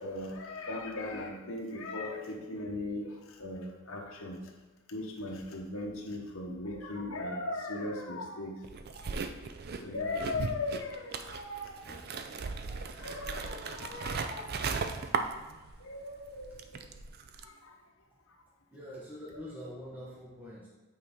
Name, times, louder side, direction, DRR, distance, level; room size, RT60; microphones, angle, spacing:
voice 1, 0.0-4.4 4.9-8.6 8.9-9.2 9.8-11.8 12.7-14.7 15.8-16.9 17.4-17.7 18.3-18.5, left 2 dB, 65° left, 0 dB, 1.1 m, -38 dB
sound 1, 8.6-15.9 16.2-17.4, right 5 dB, 45° right, 0.4 m, -37 dB
voice 2, 18.7-20.7, equal, 10° right, -8 dB, 1.2 m, -45 dB
8.5 x 4.3 x 3.6 m, 1.2 s
head